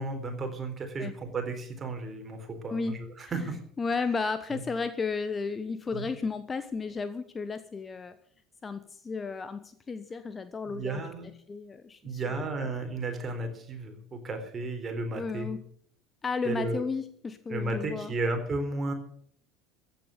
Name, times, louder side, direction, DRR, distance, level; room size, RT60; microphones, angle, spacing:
voice 1, 0.0-3.6 4.5-4.6 5.9-6.1 10.7-11.3 12.0-15.5 16.4-16.8 17.5-18.9, right 2 dB, 25° right, 5 dB, 3.9 m, -33 dB
voice 2, 2.7-3.5 3.8-8.1 8.6-11.0 11.5-12.4 15.1-15.6 16.2-18.1, left 4 dB, 20° left, 12 dB, 1.0 m, -33 dB
15.0 x 8.9 x 8.4 m, 0.63 s
figure-of-eight pair, 70°, 0 cm